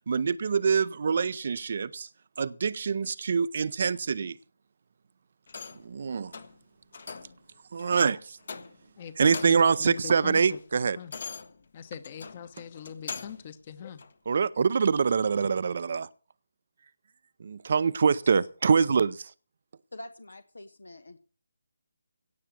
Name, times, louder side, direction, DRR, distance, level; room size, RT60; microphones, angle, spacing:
voice 1, 0.1-2.1 2.4-4.4 5.8-6.4 7.7-8.4 9.2-11.0 14.3-16.1 17.4-19.3, right 5 dB, 50° right, 17 dB, 0.6 m, -25 dB
sound 1, 5.5-5.9 6.3-6.6 6.9-7.4 7.8-8.0 8.4-8.9 9.2-9.8 10.1-13.5 14.0-14.1, left 5 dB, 55° left, 1.4 m, -42 dB
voice 2, 9.0-10.6 11.0-11.2 11.7-14.0, left 8 dB, 35° left, 13 dB, 1.2 m, -42 dB
voice 3, 19.9-21.2, left 1 dB, 75° left, 12 dB, 1.0 m, -45 dB
17.5 x 6.8 x 7.5 m, 0.39 s
figure-of-eight pair, 150°, 0 cm